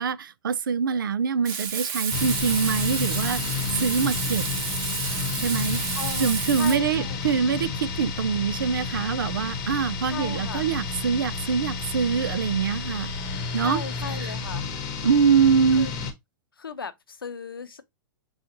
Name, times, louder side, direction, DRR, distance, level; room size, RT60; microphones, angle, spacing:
voice 1, 0.0-3.4 3.8-4.5 5.4-5.8 6.2-13.1 13.5-13.8 15.0-15.9, right 6 dB, 70° right, 0.4 m, -24 dB
Frying (food), 1.4-6.8, right 7 dB, 40° right, 0.9 m, -30 dB
sound 1, 2.1-16.1, left 5 dB, 35° left, 1.0 m, -31 dB
voice 2, 5.9-7.2 10.0-10.7 13.5-14.7 15.7-15.9 16.6-17.8, left 5 dB, 80° left, 0.7 m, -36 dB
5.0 x 2.3 x 2.8 m
figure-of-eight pair, 110°, 12 cm